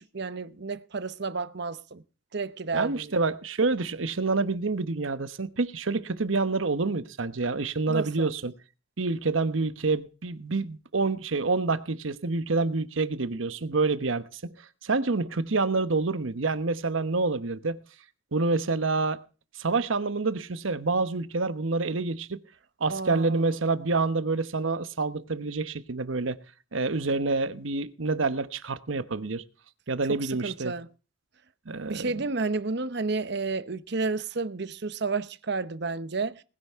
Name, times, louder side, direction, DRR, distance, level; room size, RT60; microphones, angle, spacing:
voice 1, 0.0-2.0 2.3-3.1 7.9-8.3 22.9-23.4 30.1-30.9 31.8-36.4, right 4 dB, 60° right, 0.9 m, -31 dB
voice 2, 2.7-8.5 9.0-14.6 14.8-17.8 18.3-19.2 19.6-22.4 22.8-26.4 26.7-29.4 29.9-30.7 31.7-32.1, right 3 dB, 90° right, 1.0 m, -27 dB
19.5 x 10.0 x 3.6 m
head